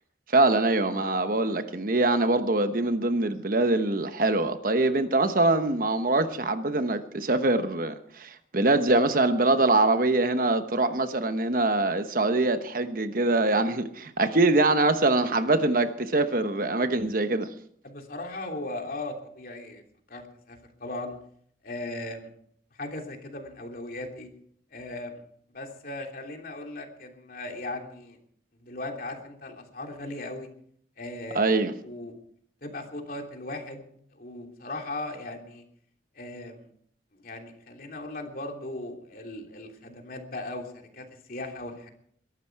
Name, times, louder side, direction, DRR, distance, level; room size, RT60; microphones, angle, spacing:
voice 1, 0.3-17.5 31.3-31.7, right 2 dB, 50° right, 1.1 m, -24 dB
voice 2, 17.8-19.8 20.1-21.2 21.6-22.3 22.7-24.3 24.7-25.1 25.5-28.2 28.6-30.5 31.0-31.5 31.8-32.1 32.6-35.6 36.1-36.7 37.1-41.9, left 2 dB, 50° left, 3.0 m, -38 dB
22.5 x 12.0 x 4.7 m
head